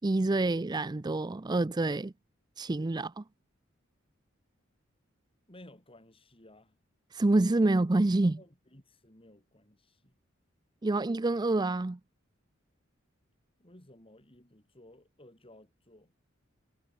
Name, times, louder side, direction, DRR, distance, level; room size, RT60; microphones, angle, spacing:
voice 1, 0.0-2.1 2.6-3.2 7.1-8.4 10.8-12.0, right 2 dB, 20° right, 0.4 m, -27 dB
voice 2, 5.5-6.8 8.2-10.2 13.6-16.1, left 1 dB, 25° left, 4.3 m, -56 dB
head